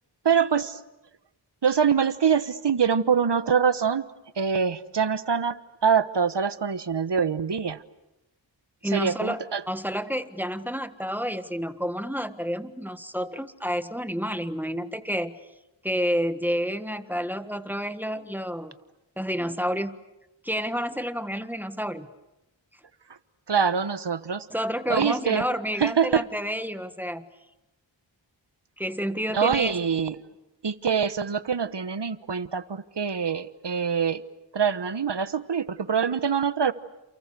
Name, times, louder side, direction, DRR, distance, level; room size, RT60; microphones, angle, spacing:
voice 1, 0.2-0.8 1.6-4.0 4.4-7.8 8.9-9.6 23.5-24.5 24.9-25.4 25.8-26.2 29.3-30.2 30.6-34.2 34.5-36.7, right 6 dB, 60° right, 13 dB, 1.2 m, -24 dB
voice 2, 8.8-15.4 15.8-18.7 19.2-20.0 20.4-22.1 24.5-27.3 28.8-29.7, equal, 5° right, 10 dB, 1.6 m, -29 dB
29.0 x 29.0 x 6.8 m, 0.95 s
wide cardioid pair, 60°, 46 cm